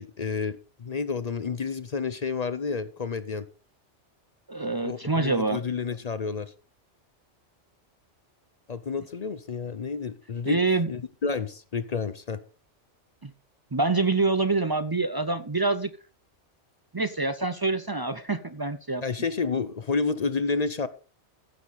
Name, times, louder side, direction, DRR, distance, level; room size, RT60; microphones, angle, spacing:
voice 1, 0.0-3.5 4.8-6.5 8.7-10.6 10.9-12.4 19.0-20.9, left 4 dB, 45° left, 0.6 m, -30 dB
voice 2, 4.5-5.6 10.5-10.9 13.2-13.3 13.7-15.9 16.9-19.0, right 3 dB, 35° right, 0.3 m, -26 dB
15.5 x 6.6 x 4.0 m
omnidirectional pair, 1.2 m